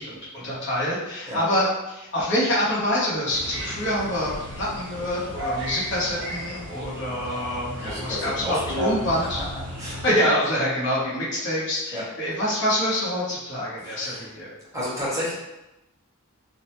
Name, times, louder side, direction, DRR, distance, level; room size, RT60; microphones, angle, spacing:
voice 1, 0.0-9.4 10.0-14.5, left 1 dB, 55° left, -7 dB, 0.9 m, -26 dB
sound 1, 3.3-10.1, equal, 55° right, 0.7 m, -35 dB
voice 2, 7.8-9.0 9.8-10.0 11.9-12.1 13.8-14.3 14.7-15.3, equal, 15° right, -8 dB, 0.7 m, -30 dB
2.2 x 2.1 x 2.9 m, 0.95 s
head